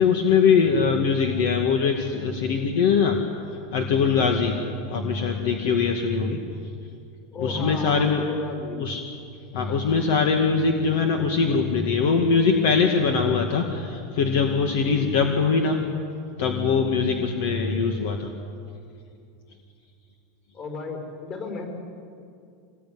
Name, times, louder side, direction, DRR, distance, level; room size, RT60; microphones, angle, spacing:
voice 1, 0.0-3.2 3.5-4.6 4.9-6.4 7.4-8.2 8.8-9.0 9.5-15.8 16.4-18.3, left 5 dB, 60° left, 4 dB, 2.1 m, -22 dB
voice 2, 7.3-8.8 20.5-21.6, left 3 dB, 30° left, 3 dB, 5.8 m, -33 dB
26.0 x 20.5 x 9.5 m, 2.4 s
supercardioid pair, 170°, 0 cm